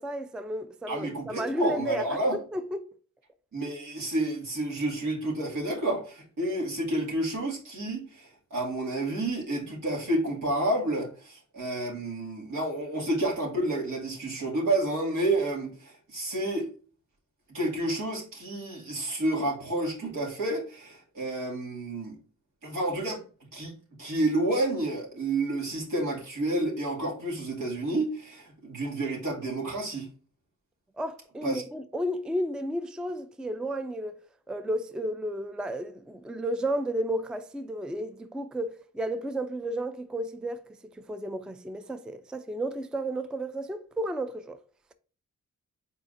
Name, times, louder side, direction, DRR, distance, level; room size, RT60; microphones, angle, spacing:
voice 1, 0.0-2.8 31.0-34.1 34.5-40.6 41.0-44.6, right 1 dB, 5° right, 0.4 m, -32 dB
voice 2, 0.9-2.4 3.5-16.7 17.5-22.2 22.6-23.2 23.5-23.7 24.0-30.1 31.4-31.6, right 1 dB, 80° right, 2.3 m, -30 dB
4.7 x 4.3 x 2.6 m
cardioid pair, 60°, 32 cm